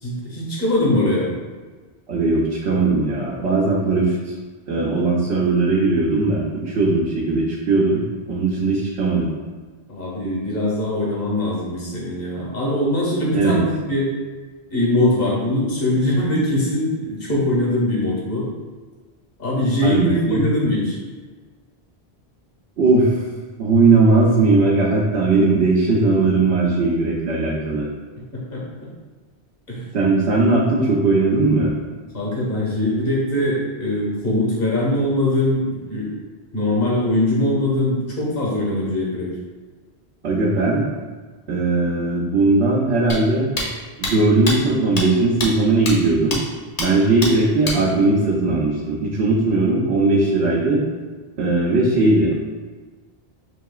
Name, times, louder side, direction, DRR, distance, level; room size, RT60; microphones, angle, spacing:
voice 1, 0.0-1.3 9.9-14.1 14.7-18.5 19.4-21.0 28.5-28.6 29.7-29.9 32.1-36.1 36.5-39.3, left 1 dB, 65° left, -4 dB, 1.4 m, -21 dB
voice 2, 2.1-4.3 4.7-8.0 8.3-9.3 13.3-13.6 19.8-20.4 22.8-23.1 23.6-27.9 29.9-31.7 40.2-40.8 41.5-43.5 44.0-46.4 46.8-50.8 51.4-52.3, right 3 dB, 75° right, -5 dB, 0.9 m, -18 dB
sound 1, 43.1-43.2 43.6-43.7 44.0-44.1 44.5-44.6 45.0-45.1 45.4-45.5 45.9-46.0 46.3-46.4 46.8-46.9 47.2-47.3 47.6-47.8, left 1 dB, 40° left, 0.8 m, -24 dB
5.8 x 2.8 x 2.3 m, 1.4 s
omnidirectional pair, 1.1 m